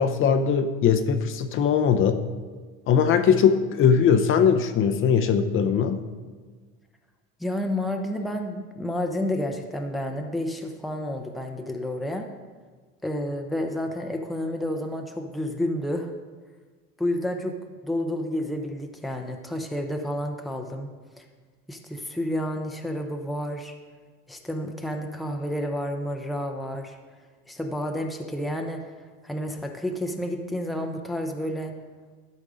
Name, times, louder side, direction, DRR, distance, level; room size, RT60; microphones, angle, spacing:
voice 1, 0.0-2.2 2.9-6.0, left 7 dB, 40° left, 8 dB, 0.7 m, -20 dB
voice 2, 7.4-12.3 13.0-16.1 17.0-17.6 17.8-20.9 21.2-21.3 21.7-23.8 24.3-27.0 27.5-28.9 29.2-31.7, left 1 dB, ahead, 3 dB, 0.7 m, -30 dB
12.5 x 5.4 x 4.9 m, 1.4 s
cardioid pair, 130°, 31 cm